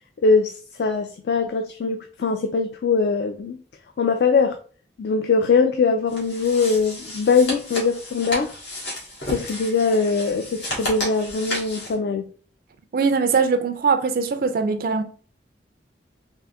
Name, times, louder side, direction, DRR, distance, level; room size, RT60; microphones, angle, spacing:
voice 1, 0.2-3.6 4.0-4.6 5.0-8.5 9.3-12.3, left 4 dB, 55° left, 0.3 m, -21 dB
sound 1, 6.1-11.9, left 1 dB, 75° left, 1.6 m, -33 dB
voice 2, 12.9-15.0, right 5 dB, 50° right, 0.3 m, -21 dB
3.7 x 2.7 x 3.4 m
head